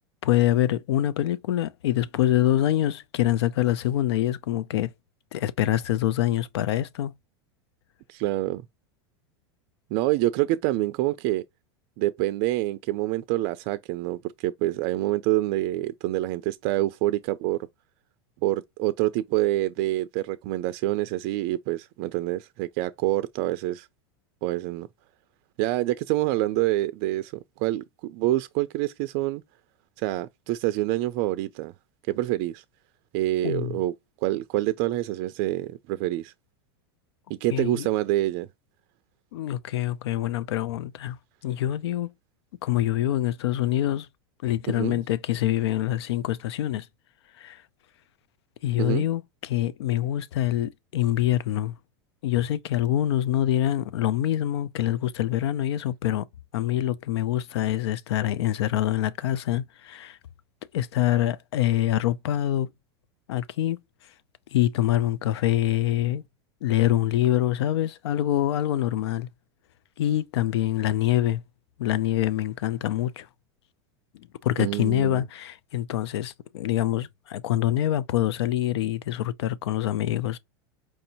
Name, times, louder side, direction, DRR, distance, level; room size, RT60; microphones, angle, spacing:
voice 1, 0.2-4.9 5.3-7.1 33.4-33.8 37.5-37.9 39.3-41.2 41.4-42.1 42.6-44.1 44.4-46.9 47.4-47.6 48.6-51.7 52.2-56.3 56.5-60.2 60.7-62.7 63.3-63.8 64.5-66.2 66.6-69.3 70.0-71.4 71.8-73.3 74.1-80.4, left 12 dB, 80° left, 0.5 m, -25 dB
voice 2, 8.1-8.6 9.9-11.4 12.0-17.6 18.4-23.9 24.4-24.9 25.6-27.3 27.6-29.4 30.0-31.7 32.1-32.6 33.1-33.9 34.2-36.3 37.3-38.5 44.7-45.0 48.8-49.0 74.6-75.2, right 16 dB, 55° right, 0.4 m, -26 dB
4.7 x 2.6 x 2.8 m
supercardioid pair, 115°, 14 cm